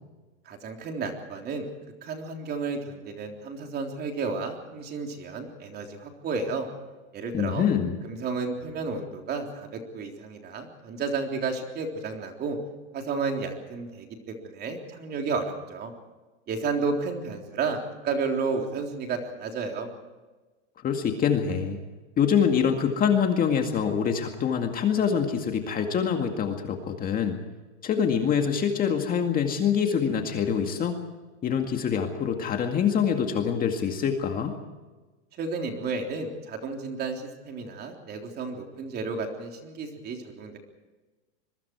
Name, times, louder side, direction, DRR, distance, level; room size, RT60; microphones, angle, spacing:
voice 1, 0.5-1.7 2.0-6.7 7.1-7.7 8.0-12.6 12.9-15.9 16.5-19.9 35.4-40.6, right 4 dB, 25° right, 3 dB, 3.6 m, -32 dB
voice 2, 7.3-8.0 20.8-21.8 22.2-27.4 27.8-31.0 31.4-34.5, left 7 dB, 25° left, 4 dB, 2.1 m, -25 dB
25.5 x 23.5 x 4.7 m, 1.2 s
supercardioid pair, 150°, 36 cm